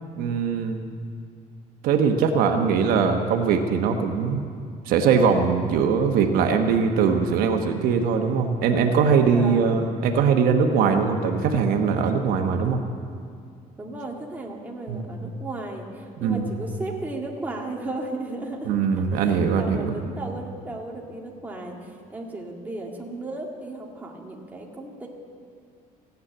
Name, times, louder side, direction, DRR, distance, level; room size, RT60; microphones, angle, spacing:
voice 1, 0.2-0.8 1.8-4.4 4.9-12.8 14.9-15.0 16.2-16.5 18.7-20.0, right 6 dB, 80° right, 4 dB, 1.1 m, -21 dB
voice 2, 9.3-9.8 13.8-25.1, right 2 dB, 10° right, -1 dB, 1.9 m, -35 dB
16.0 x 9.5 x 8.0 m, 2.3 s
cardioid pair, 130°, 15 cm